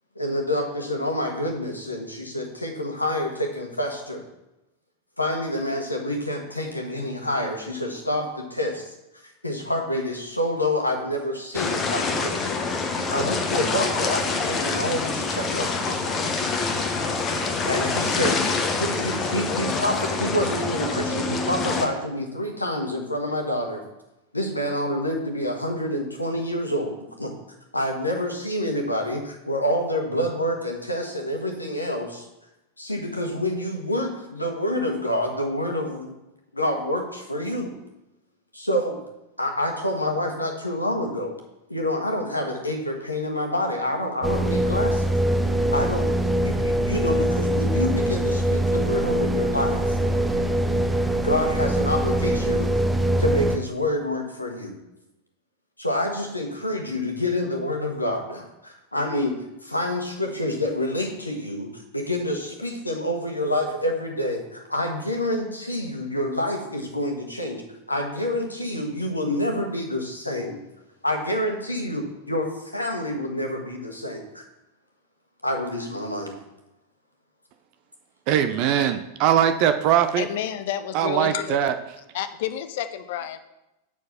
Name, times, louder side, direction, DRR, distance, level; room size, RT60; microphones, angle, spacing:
voice 1, 0.1-4.2 5.2-8.9 9.4-12.5 13.1-16.0 17.6-18.4 18.8-23.8 24.3-27.3 27.7-32.2 32.8-36.1 36.5-37.8 38.5-39.0 39.4-41.3 41.7-45.0 45.7-46.0 46.4-50.0 51.2-52.7 53.2-54.8 55.8-61.7 61.9-67.6 67.9-70.6 71.0-74.5 75.4-76.3, left 1 dB, 85° left, 3 dB, 1.3 m, -27 dB
sound 1, 11.5-21.9, left 4 dB, 25° left, 1.0 m, -26 dB
sound 2, 44.2-53.6, right 1 dB, 5° right, 0.8 m, -23 dB
voice 2, 78.3-80.3 80.9-81.8, right 10 dB, 45° right, 10 dB, 0.5 m, -21 dB
voice 3, 80.2-81.6 82.1-83.4, left 10 dB, 55° left, 11 dB, 0.6 m, -30 dB
7.1 x 4.7 x 5.9 m, 0.94 s
figure-of-eight pair, 90°, 0 cm